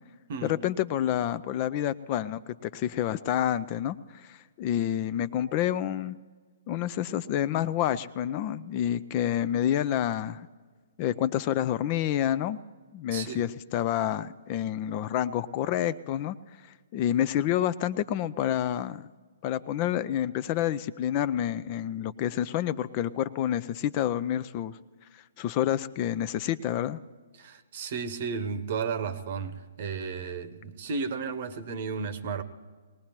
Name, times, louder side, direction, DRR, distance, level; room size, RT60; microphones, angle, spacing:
voice 1, 0.4-6.2 6.7-10.5 11.0-12.6 12.9-16.4 16.9-19.1 19.4-24.8 25.4-27.0, left 11 dB, 35° left, 0.4 m, -28 dB
voice 2, 13.1-13.5 27.3-32.4, right 5 dB, 45° right, 0.9 m, -33 dB
21.0 x 18.5 x 3.0 m
figure-of-eight pair, 125°, 0 cm